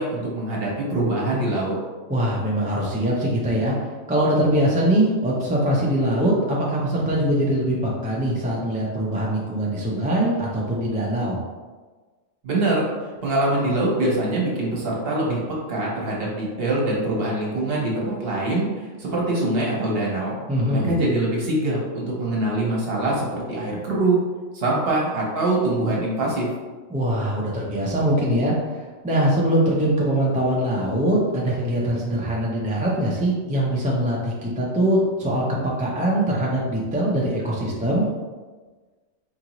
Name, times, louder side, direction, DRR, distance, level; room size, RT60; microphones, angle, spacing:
voice 1, 0.0-1.7 12.4-12.9 13.2-15.4 15.7-20.4 20.7-24.3 24.5-26.5, right 2 dB, 50° right, -4 dB, 1.1 m, -23 dB
voice 2, 2.1-3.7 4.1-11.4 20.5-20.9 26.9-28.5 29.0-35.4 35.8-38.0, right 1 dB, 10° right, -4 dB, 0.3 m, -22 dB
4.6 x 2.6 x 2.9 m, 1.3 s
omnidirectional pair, 1.3 m